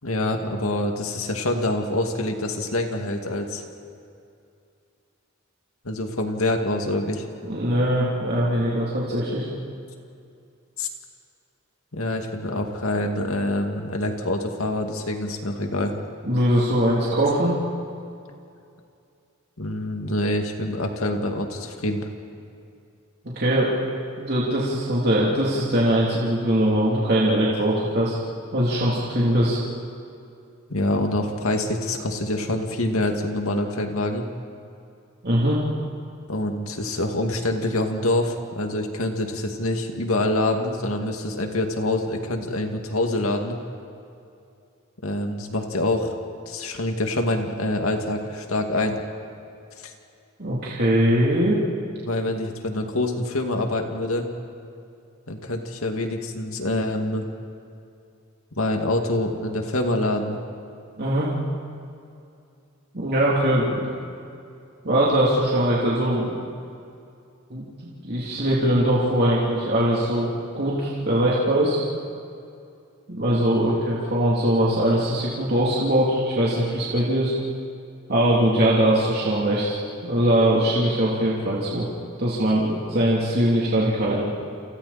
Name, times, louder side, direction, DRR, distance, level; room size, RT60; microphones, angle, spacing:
voice 1, 0.0-3.6 5.8-7.3 10.8-10.9 11.9-15.9 19.6-22.1 30.7-34.3 36.3-43.6 45.0-46.1 46.5-49.0 49.8-49.9 52.0-54.3 55.3-57.3 58.6-60.4, left 1 dB, 80° left, 3 dB, 2.4 m, -26 dB
voice 2, 7.5-9.5 16.2-17.5 23.3-23.7 24.2-28.2 28.5-29.6 35.2-35.6 50.4-51.6 61.0-61.3 62.9-63.9 64.8-66.4 67.5-70.3 70.5-71.8 73.1-77.3 78.1-81.8 82.2-84.2, right 1 dB, 50° right, -6 dB, 3.3 m, -21 dB
29.0 x 28.5 x 4.4 m, 2.5 s
head